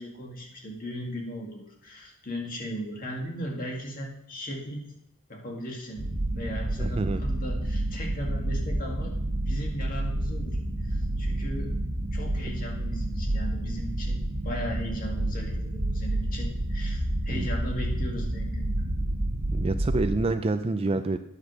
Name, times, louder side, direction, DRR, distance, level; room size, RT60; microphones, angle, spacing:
voice 1, 0.0-4.8 5.3-6.0 6.4-9.1 9.5-11.7 12.1-18.8, equal, 40° left, -1 dB, 2.1 m, -37 dB
sound 1, 6.0-20.3, right 1 dB, 85° right, 1.4 m, -29 dB
voice 2, 6.8-7.2 17.3-17.5 19.5-21.2, right 3 dB, 25° right, 9 dB, 0.4 m, -27 dB
9.5 x 5.0 x 6.3 m, 0.84 s
head